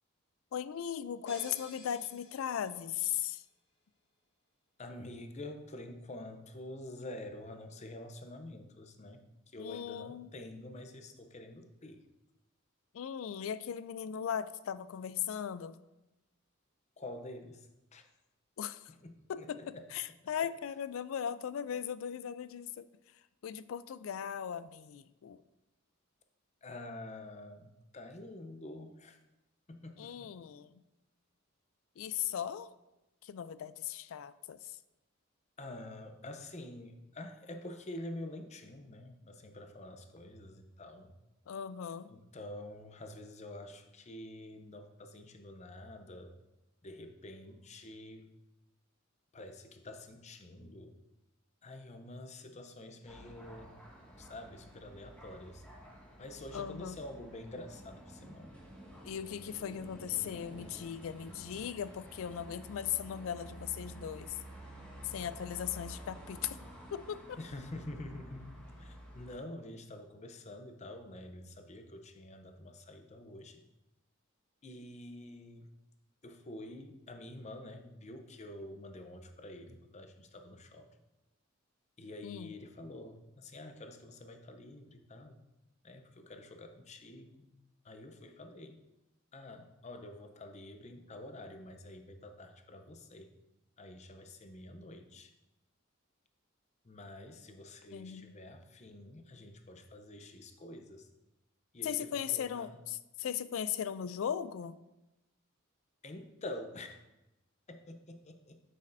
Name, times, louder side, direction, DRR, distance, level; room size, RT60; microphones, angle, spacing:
voice 1, 0.5-3.4 9.6-10.3 12.9-15.8 18.6-18.8 19.3-22.8 23.4-25.4 30.0-30.8 32.0-32.7 33.2-34.7 41.5-42.1 56.5-57.0 59.0-64.4 65.0-66.6 66.9-67.4 82.2-82.5 97.9-98.3 101.8-104.7, left 9 dB, 70° left, 15 dB, 0.3 m, -38 dB
sound 1, 1.3-3.1, left 3 dB, 55° left, 1.9 m, -52 dB
voice 2, 4.8-12.1 17.0-17.7 17.9-18.0 18.9-19.9 26.6-29.2 29.7-30.3 35.6-41.1 42.1-46.4 46.8-48.3 49.3-51.0 51.6-53.8 54.2-55.6 56.2-58.5 67.4-73.6 74.6-75.7 76.2-80.9 82.0-85.4 85.8-87.5 87.8-88.8 89.3-93.3 93.8-95.3 96.8-101.1 101.7-102.8 106.0-107.0 107.7-108.6, left 1 dB, 35° left, 6 dB, 0.6 m, -47 dB
sound 2, 53.1-69.4, equal, 5° left, 1.7 m, -51 dB
8.6 x 6.5 x 2.6 m, 0.96 s
head